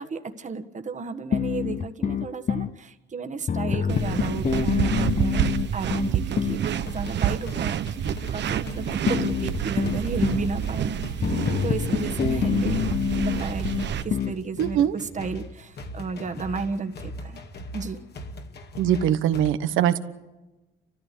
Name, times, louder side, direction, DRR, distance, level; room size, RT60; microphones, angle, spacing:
voice 1, 0.0-11.3 11.6-17.4 17.7-18.0, right 4 dB, 40° right, 7 dB, 1.5 m, -33 dB
sound 1, 1.3-2.7 3.5-6.7 9.1-10.5 11.2-14.4, left 7 dB, 40° left, 0.7 m, -26 dB
sound 2, 3.9-14.0, right 10 dB, 60° right, 1.0 m, -28 dB
sound 3, 6.8-19.5, left 1 dB, 55° left, 2.2 m, -40 dB
voice 2, 14.6-14.9 18.8-20.0, right 10 dB, 90° right, 12 dB, 1.2 m, -22 dB
30.0 x 14.0 x 8.4 m, 1.1 s
cardioid pair, 90°, 20 cm